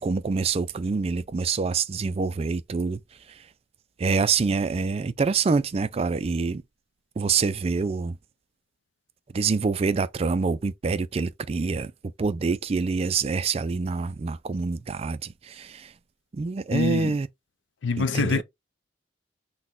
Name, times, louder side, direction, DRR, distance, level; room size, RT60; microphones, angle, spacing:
voice 1, 0.0-3.0 4.0-6.6 7.2-8.1 9.3-11.9 12.2-15.9 16.3-17.3 18.0-18.4, right 4 dB, 30° right, 0.3 m, -26 dB
voice 2, 16.7-17.2 17.8-18.4, left 4 dB, 80° left, 0.5 m, -25 dB
6.0 x 2.2 x 3.8 m
head